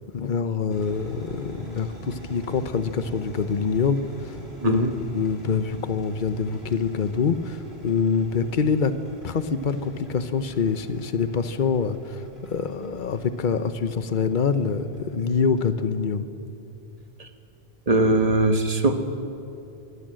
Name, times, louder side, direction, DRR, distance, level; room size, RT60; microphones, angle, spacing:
voice 1, 0.1-4.4 4.7-8.9 9.2-16.3, left 5 dB, 55° left, 11 dB, 1.0 m, -25 dB
sound 1, 0.7-15.6, right 1 dB, 75° left, 4.1 m, -44 dB
voice 2, 4.6-4.9 17.2-17.3 17.9-18.9, right 2 dB, 40° right, 6 dB, 1.5 m, -20 dB
23.5 x 15.5 x 7.7 m, 2.7 s
omnidirectional pair, 1.0 m